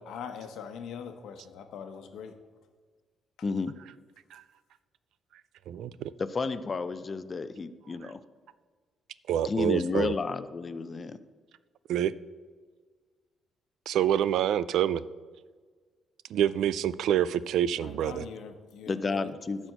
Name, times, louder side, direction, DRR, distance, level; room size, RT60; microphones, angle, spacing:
voice 1, 0.0-2.3 17.8-19.3 19.6-19.7, left 7 dB, 80° left, 7 dB, 1.0 m, -42 dB
voice 2, 3.4-3.8 6.2-8.2 9.4-11.2 18.9-19.7, left 4 dB, 35° left, 12 dB, 0.6 m, -31 dB
voice 3, 9.3-10.1 11.9-12.1 13.9-15.0 16.3-18.2, right 10 dB, 80° right, 17 dB, 0.3 m, -26 dB
12.0 x 4.4 x 7.9 m, 1.5 s
cardioid pair, 90°, 0 cm